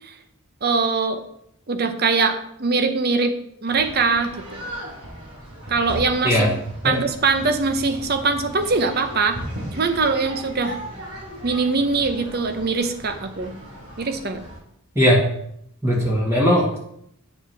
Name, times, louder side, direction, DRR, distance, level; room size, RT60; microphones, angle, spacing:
voice 1, 0.6-1.2 1.7-3.4 3.6-4.7 5.7-6.4 6.8-9.4 9.7-10.8 11.4-13.5 14.0-14.4, right 4 dB, 45° right, 8 dB, 0.8 m, -22 dB
sound 1, 3.7-14.6, equal, 75° right, 3.6 m, -37 dB
voice 2, 15.8-16.8, equal, 15° right, -5 dB, 1.7 m, -18 dB
9.6 x 7.1 x 3.4 m, 0.73 s
head